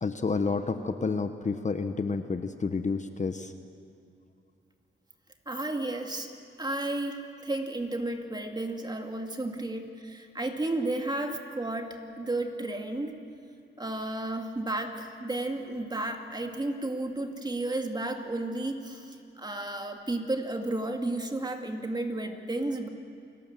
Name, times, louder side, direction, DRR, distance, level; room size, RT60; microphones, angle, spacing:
voice 1, 0.0-3.5, left 4 dB, 35° left, 8 dB, 1.1 m, -30 dB
voice 2, 5.5-6.3 6.6-13.1 13.8-22.9, right 2 dB, 20° right, 4 dB, 2.4 m, -33 dB
28.5 x 19.0 x 7.5 m, 2.5 s
cardioid pair, 90°, 20 cm